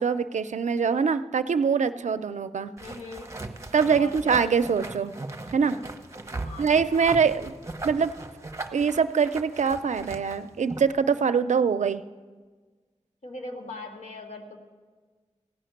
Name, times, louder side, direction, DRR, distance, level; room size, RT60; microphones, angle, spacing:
voice 1, 0.0-2.7 3.7-5.1 5.5-5.8 6.6-7.5 7.8-8.1 8.7-12.0, right 6 dB, 90° right, 12 dB, 0.4 m, -24 dB
voice 2, 2.8-3.4 3.9-4.4 6.4-7.2 13.2-14.6, left 2 dB, 75° left, 2 dB, 1.7 m, -41 dB
sound 1, 2.8-11.0, right 2 dB, 25° right, 0.9 m, -38 dB
16.0 x 5.8 x 9.1 m, 1.4 s
wide cardioid pair, 95°, 12 cm